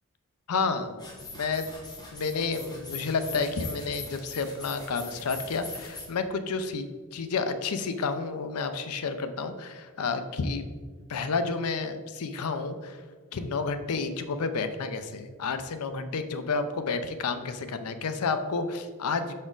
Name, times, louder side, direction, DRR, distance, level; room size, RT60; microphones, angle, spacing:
voice 1, 0.5-1.7 2.1-10.7 11.1-13.0 13.3-19.3, left 4 dB, 85° left, 9 dB, 0.5 m, -30 dB
sound 1, 1.0-6.1, left 3 dB, 20° left, 1.1 m, -42 dB
5.9 x 4.3 x 3.8 m, 1.5 s
head